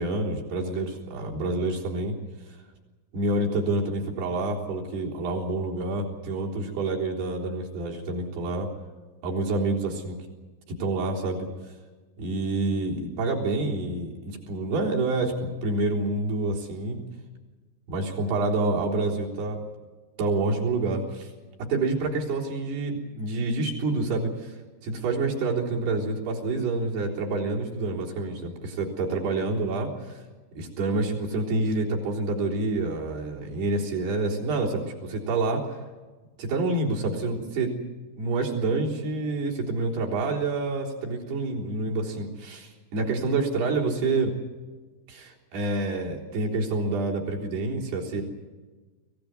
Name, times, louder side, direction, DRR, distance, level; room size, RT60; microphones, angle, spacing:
voice 1, 0.0-2.2 3.1-8.7 9.2-10.2 10.7-11.5 12.2-17.0 17.9-19.6 20.2-21.3 21.7-24.6 24.8-30.2 30.6-35.8 36.4-37.7 38.2-44.3 45.1-48.2, right 2 dB, 60° right, -2 dB, 5.7 m, -28 dB
25.0 x 16.5 x 9.6 m, 1.3 s
omnidirectional pair, 5.1 m